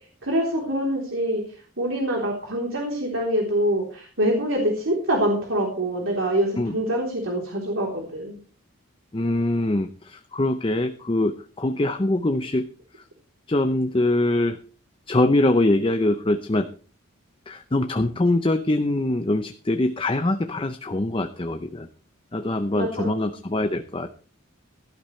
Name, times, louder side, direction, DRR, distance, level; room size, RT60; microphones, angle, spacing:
voice 1, 0.2-1.4 1.8-8.4 22.8-23.3, right 1 dB, 75° right, -1 dB, 3.6 m, -25 dB
voice 2, 9.1-12.7 13.0-13.1 13.5-14.6 15.1-16.7 17.5-21.9 22.3-24.1, left 2 dB, 25° left, 8 dB, 0.7 m, -23 dB
17.0 x 12.0 x 3.2 m, 0.39 s
head